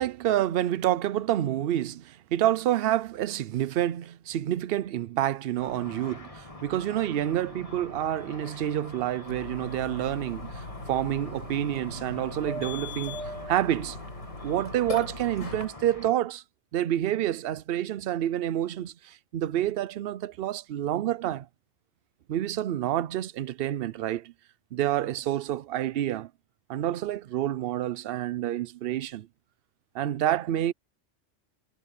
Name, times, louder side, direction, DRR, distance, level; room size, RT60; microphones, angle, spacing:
voice 1, 0.0-10.6 10.9-13.2 13.5-14.0 14.4-16.4 16.7-21.5 22.3-24.3 24.7-26.3 26.7-29.3 29.9-30.7, right 12 dB, 60° right, 0.7 m, -28 dB
Car / Traffic noise roadway noise / Engine, 5.6-16.1, left 2 dB, 25° left, 2.1 m, -45 dB
Burping eructation, 9.3-15.7, left 2 dB, 80° left, 4.7 m, -39 dB
omnidirectional pair, 1.3 m